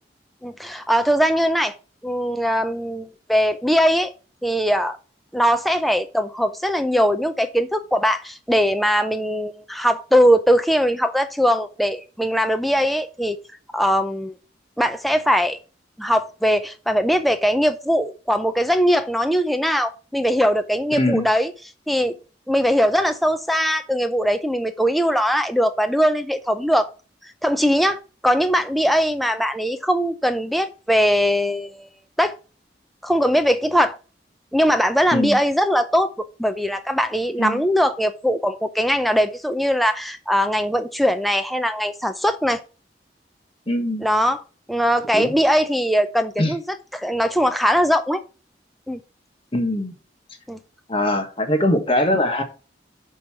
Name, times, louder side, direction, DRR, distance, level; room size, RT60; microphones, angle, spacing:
voice 1, 0.4-1.7 2.0-4.1 4.4-5.0 5.3-13.4 13.7-14.3 14.8-15.6 16.0-21.5 21.9-22.1 22.5-26.9 27.4-31.9 32.2-32.3 33.0-34.0 34.5-42.6 44.0-44.4 44.7-48.2 48.9-49.0 50.5-50.6, equal, ahead, 0.5 m, -20 dB
voice 2, 20.9-21.3 35.1-35.4 37.4-37.6 43.7-44.1 45.1-45.3 46.4-46.5 49.5-49.9 50.9-52.4, left 1 dB, 30° left, 1.3 m, -21 dB
6.2 x 5.4 x 5.6 m
head